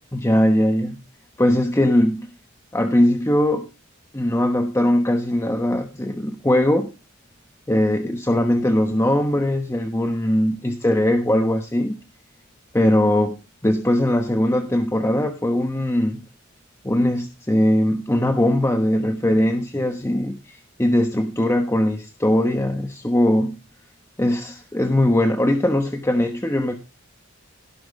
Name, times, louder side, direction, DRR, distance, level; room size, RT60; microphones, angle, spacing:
voice 1, 0.1-1.0 1.4-2.3 2.7-3.7 4.1-6.9 7.7-12.0 12.7-13.4 13.6-16.2 16.8-23.5 24.2-26.7, left 1 dB, 15° left, 6 dB, 1.1 m, -20 dB
17.0 x 6.2 x 4.8 m, 0.28 s
head